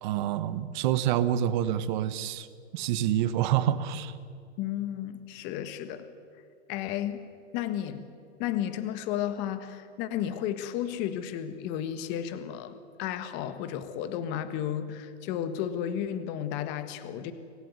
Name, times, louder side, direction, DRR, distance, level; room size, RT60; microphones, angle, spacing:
voice 1, 0.0-2.5 2.7-4.2, right 11 dB, 40° right, 12 dB, 1.3 m, -27 dB
voice 2, 4.6-6.1 6.7-7.2 7.5-8.0 8.4-17.3, left 10 dB, 30° left, 11 dB, 1.6 m, -33 dB
26.0 x 15.0 x 9.6 m, 2.4 s
hypercardioid pair, 145°, 34 cm